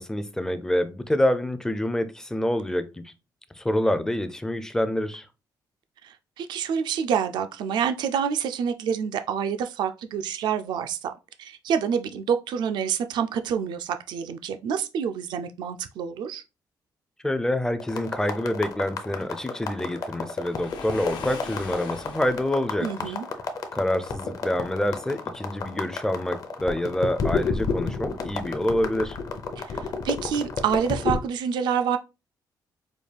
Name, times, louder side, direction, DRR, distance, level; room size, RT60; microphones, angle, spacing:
voice 1, 0.0-3.1 3.5-5.3 17.2-23.1 23.7-29.2, left 1 dB, 5° left, 0.4 m, -27 dB
voice 2, 6.0-11.1 11.4-16.4 22.8-23.3 29.6-32.0, right 7 dB, 75° right, 0.4 m, -27 dB
sound 1, 17.8-31.2, left 4 dB, 50° left, 0.7 m, -31 dB
Waves surf, 20.4-22.5, left 5 dB, 75° left, 0.8 m, -40 dB
5.1 x 2.3 x 3.3 m
cardioid pair, 140°, 8 cm